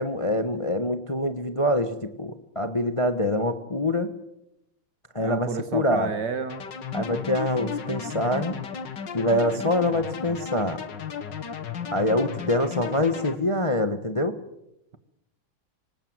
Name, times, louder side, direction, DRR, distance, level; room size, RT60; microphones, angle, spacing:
voice 1, 0.0-4.1 5.1-6.1 6.9-8.5 9.1-10.8 11.9-14.4, left 1 dB, 20° left, 9 dB, 1.0 m, -25 dB
voice 2, 5.2-6.7, right 5 dB, 55° right, 11 dB, 2.1 m, -30 dB
sound 1, 6.5-13.4, left 6 dB, 60° left, 2.2 m, -34 dB
25.5 x 19.5 x 7.9 m, 0.85 s
omnidirectional pair, 2.2 m